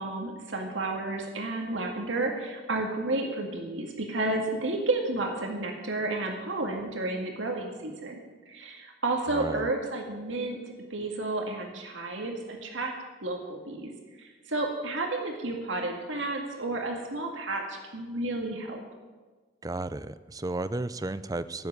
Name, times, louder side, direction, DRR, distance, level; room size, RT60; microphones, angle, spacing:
voice 1, 0.0-8.2 8.5-10.6 10.9-12.9 13.2-13.9 14.2-18.8, right 2 dB, 85° right, 2 dB, 2.0 m, -31 dB
voice 2, 9.3-9.7 19.6-21.7, right 2 dB, 20° right, 14 dB, 0.5 m, -33 dB
16.5 x 7.7 x 9.5 m, 1.3 s
head